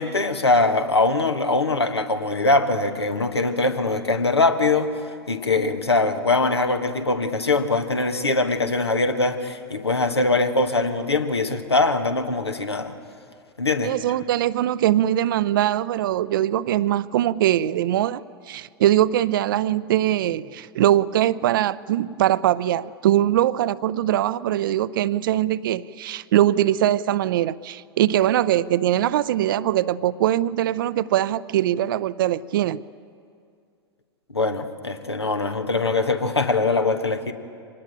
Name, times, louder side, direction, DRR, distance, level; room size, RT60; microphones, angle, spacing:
voice 1, 0.0-12.9 13.6-13.9 34.3-37.3, left 3 dB, 80° left, 7 dB, 1.4 m, -22 dB
voice 2, 13.8-32.8, right 12 dB, 55° right, 17 dB, 0.5 m, -22 dB
24.5 x 19.5 x 9.0 m, 2.4 s
figure-of-eight pair, 95°, 13 cm